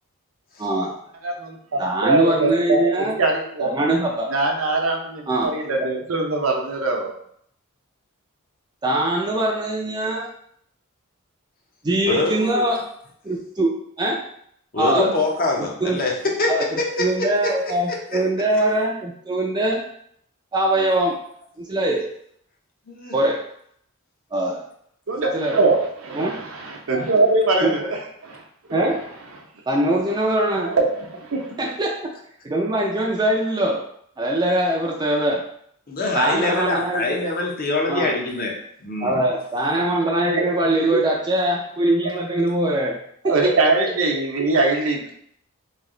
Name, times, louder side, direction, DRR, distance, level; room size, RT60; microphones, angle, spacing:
voice 1, 0.6-0.9 1.8-3.1 3.6-4.3 5.3-5.5 8.8-10.3 11.8-12.8 13.2-14.2 14.8-15.1 15.6-16.0 16.5-19.8 20.5-21.1 21.6-22.1 23.1-23.4 24.3-24.6 25.3-25.7 26.1-26.4 27.6-27.7 28.7-29.0 29.7-30.8 31.6-32.1 32.4-33.9 34.2-35.4 36.1-37.3 37.9-38.1 39.0-43.0 43.2-43.4, right 1 dB, 20° right, -2 dB, 0.4 m, -22 dB
voice 2, 1.2-2.9 3.2-3.7 4.3-7.1 25.1-28.4 28.7-28.9 30.6-31.5 40.3-41.0 43.2-45.1, right 3 dB, 70° right, 1 dB, 0.7 m, -22 dB
voice 3, 12.0-12.7 14.7-17.5 17.9-18.2 22.9-23.2 35.9-38.6 38.8-39.2, left 2 dB, 45° left, -1 dB, 0.7 m, -24 dB
3.2 x 2.9 x 3.7 m, 0.67 s
head